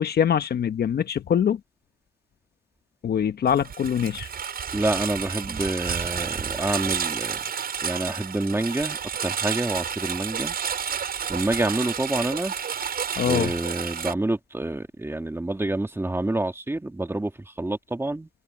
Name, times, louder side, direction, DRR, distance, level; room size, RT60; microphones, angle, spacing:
voice 1, 0.0-1.6 3.0-4.3 13.2-13.5, left 8 dB, 55° left, 1.3 m, -23 dB
Engine, 3.5-14.1, right 7 dB, 50° right, 5.9 m, -30 dB
voice 2, 4.7-7.4 7.8-10.5 11.3-12.5 13.2-18.3, right 2 dB, 10° right, 2.7 m, -28 dB
cardioid pair, 90°, 20 cm